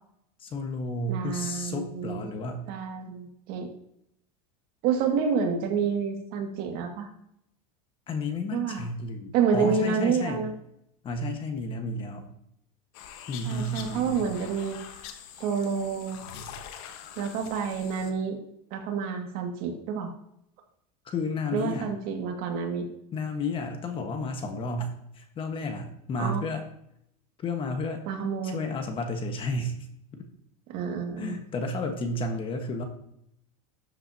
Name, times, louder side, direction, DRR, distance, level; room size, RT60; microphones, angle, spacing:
voice 1, 0.4-2.6 8.1-10.5 11.0-12.3 13.3-14.4 21.0-21.9 23.1-26.6 27.4-28.0 28.4-29.7 30.1-30.2 31.2-32.8, left 2 dB, 30° left, 5 dB, 1.4 m, -32 dB
voice 2, 1.1-2.3 2.7-3.7 4.8-7.1 8.5-8.9 9.3-10.5 13.4-14.8 15.4-16.2 17.2-18.4 18.7-20.1 21.5-22.9 26.2-26.4 28.1-28.6 30.7-31.4, right 6 dB, 55° right, 3 dB, 2.1 m, -28 dB
sound 1, 12.9-18.1, left 8 dB, 60° left, 1.3 m, -44 dB
12.5 x 7.7 x 2.8 m, 0.75 s
supercardioid pair, 140°, 19 cm